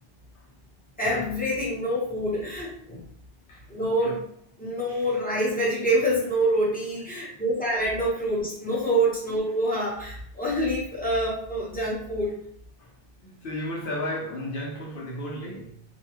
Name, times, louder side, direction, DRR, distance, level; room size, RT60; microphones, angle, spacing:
voice 1, 1.0-3.0 3.7-4.2 4.6-12.4, right 1 dB, 10° left, 1.0 m, -26 dB
voice 2, 13.2-15.8, left 1 dB, 65° left, 0.8 m, -34 dB
2.6 x 2.2 x 2.9 m
omnidirectional pair, 1.0 m